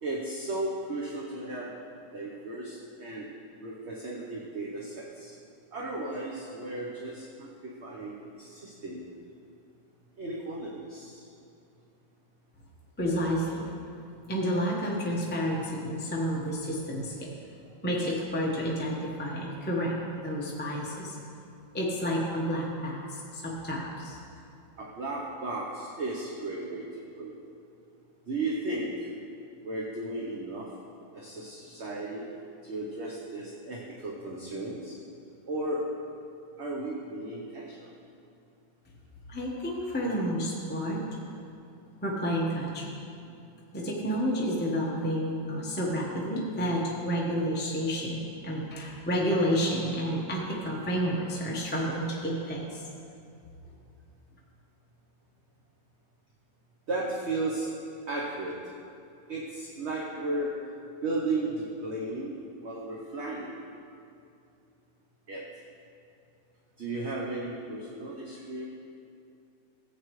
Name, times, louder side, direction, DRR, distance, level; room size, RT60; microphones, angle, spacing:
voice 1, 0.0-1.7 2.1-3.3 3.6-5.4 5.7-9.0 10.2-11.3 24.8-27.4 28.3-29.1 29.6-30.7 31.1-32.3 32.6-35.0 35.5-35.8 36.6-37.9 42.9-43.3 56.9-57.7 58.1-58.6 59.3-60.5 61.0-63.6 65.3-65.4 66.8-68.6, right 2 dB, 45° right, -3 dB, 1.0 m, -35 dB
voice 2, 13.0-13.6 14.3-17.3 17.8-19.9 20.2-21.2 21.7-24.2 39.3-41.0 42.0-42.9 43.7-52.8, equal, 10° left, -4 dB, 0.8 m, -30 dB
14.5 x 8.3 x 3.2 m, 2.6 s
omnidirectional pair, 1.9 m